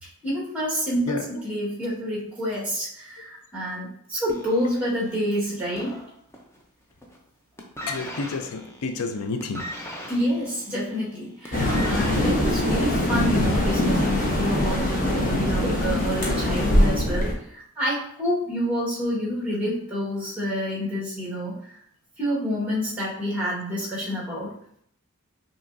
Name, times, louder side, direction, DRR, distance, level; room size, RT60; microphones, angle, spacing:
voice 1, 0.0-6.0 10.1-21.8 22.2-24.5, equal, 5° right, -6 dB, 1.4 m, -28 dB
voice 2, 1.1-1.5 7.8-9.7, left 4 dB, 85° left, 7 dB, 0.5 m, -30 dB
sound 1, 4.3-6.6 6.9-7.3 7.6-13.5 14.4-14.5, equal, 10° left, 0.6 m, -39 dB
sound 2, 11.5-17.3, left 1 dB, 40° left, 1.0 m, -22 dB
5.8 x 3.0 x 2.6 m, 0.68 s
head